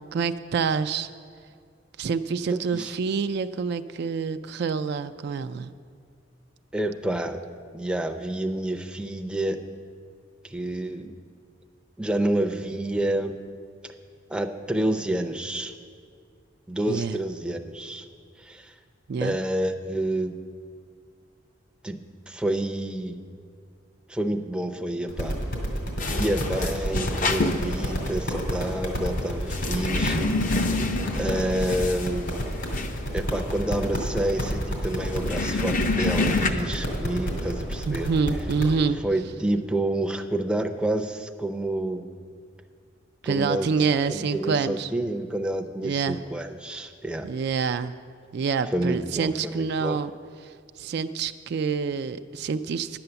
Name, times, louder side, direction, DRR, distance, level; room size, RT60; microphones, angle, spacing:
voice 1, 0.1-1.1 2.0-5.7 16.9-17.2 19.1-19.4 37.9-39.0 43.2-44.9 45.8-46.2 47.2-47.9 48.3-50.1 50.4-53.0, right 5 dB, 60° right, 10 dB, 0.3 m, -27 dB
voice 2, 2.5-2.9 6.7-7.4 7.7-9.6 10.4-11.2 12.0-13.3 14.3-15.7 16.7-18.0 18.4-18.7 19.2-20.3 21.8-22.0 22.3-23.2 24.1-25.4 26.0-30.7 31.1-32.3 33.1-38.1 39.0-42.0 43.3-47.3 48.7-50.0, right 1 dB, 5° right, 5 dB, 0.5 m, -29 dB
sound 1, 25.1-38.7, equal, 75° left, 2.6 m, -30 dB
sound 2, 26.0-36.5, left 2 dB, 45° left, 0.6 m, -28 dB
10.5 x 7.8 x 6.9 m, 2.1 s
head